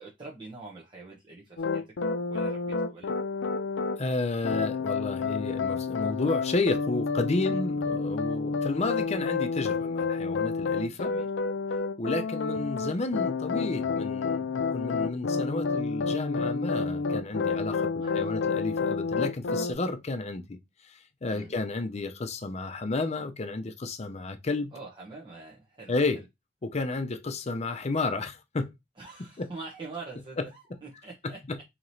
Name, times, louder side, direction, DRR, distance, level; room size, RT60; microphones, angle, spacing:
voice 1, 0.0-1.8 2.3-3.1 7.4-7.6 10.9-11.2 18.0-18.4 21.3-21.5 24.7-26.2 29.0-31.4, right 3 dB, 25° right, 0.8 m, -44 dB
sound 1, 1.6-4.0 4.4-19.7, left 4 dB, 90° left, 0.4 m, -29 dB
voice 2, 4.0-11.1 12.0-20.6 20.8-24.7 25.9-26.2 26.6-28.7 29.4-29.5 31.2-31.3, left 3 dB, 40° left, 0.6 m, -31 dB
4.7 x 2.9 x 2.7 m
head